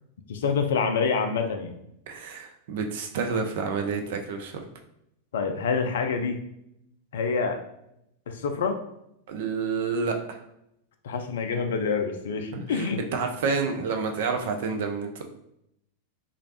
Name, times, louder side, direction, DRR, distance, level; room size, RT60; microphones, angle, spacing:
voice 1, 0.3-1.8 5.3-6.4 7.1-7.6 8.3-8.8 11.0-13.0, left 5 dB, 60° left, 6 dB, 0.4 m, -27 dB
voice 2, 2.1-4.7 9.3-10.4 12.5-15.2, right 5 dB, 55° right, 4 dB, 0.4 m, -29 dB
3.1 x 2.5 x 2.7 m, 0.79 s
figure-of-eight pair, 90°, 0 cm